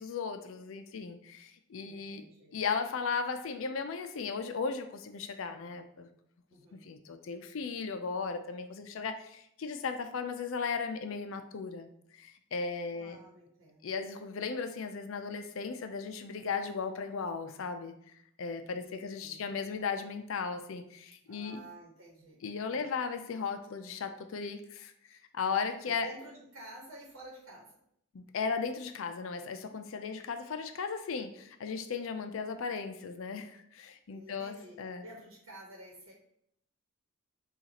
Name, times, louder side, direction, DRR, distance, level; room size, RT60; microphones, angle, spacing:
voice 1, 0.0-2.2 2.5-6.1 6.7-13.2 13.8-17.9 18.4-21.6 22.4-26.1 28.1-35.0, left 5 dB, 65° left, 8 dB, 0.4 m, -36 dB
voice 2, 1.8-2.6 6.5-6.9 12.9-13.9 18.6-19.5 21.2-22.8 25.8-27.7 34.1-36.1, right 1 dB, 75° right, -3 dB, 1.1 m, -51 dB
6.8 x 2.4 x 2.9 m, 0.71 s
head